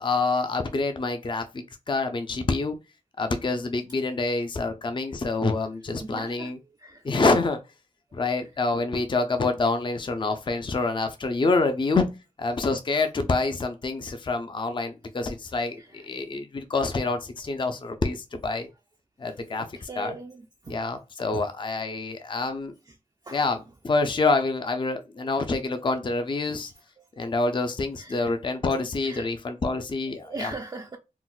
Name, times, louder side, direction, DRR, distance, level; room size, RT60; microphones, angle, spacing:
voice 1, 0.0-2.8 3.2-6.6 7.0-7.6 8.1-12.1 12.4-18.7 19.2-20.1 20.7-22.7 23.3-26.7 27.2-30.5, left 3 dB, 35° left, 0.4 m, -27 dB
voice 2, 5.9-6.5 6.8-7.0 15.8-15.9 19.5-20.8 23.3-23.4 26.6-26.7 28.0-28.3 29.0-29.3 30.2-31.0, right 3 dB, 30° right, 0.4 m, -40 dB
3.8 x 2.1 x 2.3 m
cardioid pair, 55°, 13 cm